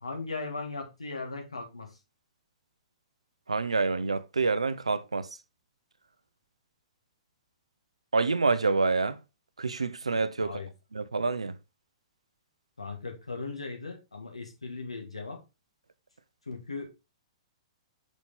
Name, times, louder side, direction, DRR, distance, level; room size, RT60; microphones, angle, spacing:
voice 1, 0.0-2.0 10.4-10.7 12.8-15.4 16.5-16.9, left 3 dB, 85° left, 1.7 m, -38 dB
voice 2, 3.5-5.3 8.1-9.2 9.6-10.6 10.9-11.5, right 4 dB, 85° right, 0.5 m, -27 dB
5.8 x 4.2 x 4.1 m
figure-of-eight pair, 110°, 3 cm